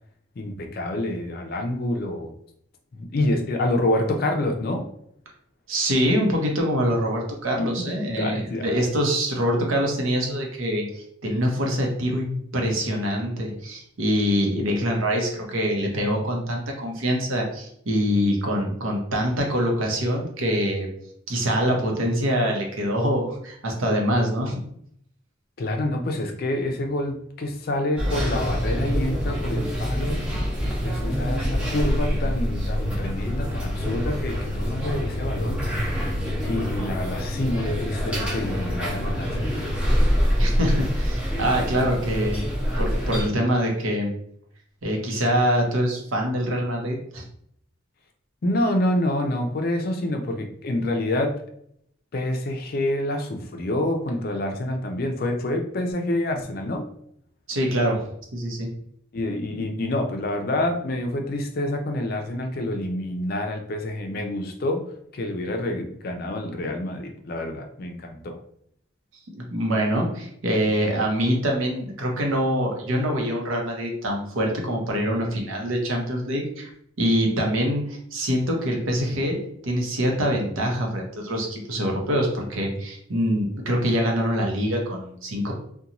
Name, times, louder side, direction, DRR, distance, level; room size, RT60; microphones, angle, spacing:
voice 1, 0.4-2.3 2.9-4.8 7.6-7.7 8.2-8.9 25.6-30.2 30.8-36.1 36.5-39.6 48.4-51.4 52.1-56.9 59.1-64.8 65.1-68.4, left 1 dB, 45° left, 4 dB, 0.4 m, -27 dB
voice 2, 5.7-20.9 21.3-24.6 40.4-42.4 42.8-44.1 44.8-47.2 57.5-58.1 58.3-58.7 69.3-76.7 77.0-79.4 79.6-85.5, equal, 85° right, 0 dB, 0.7 m, -24 dB
sound 1, 28.0-43.3, equal, 5° right, 0.8 m, -25 dB
2.5 x 2.2 x 2.8 m, 0.68 s
head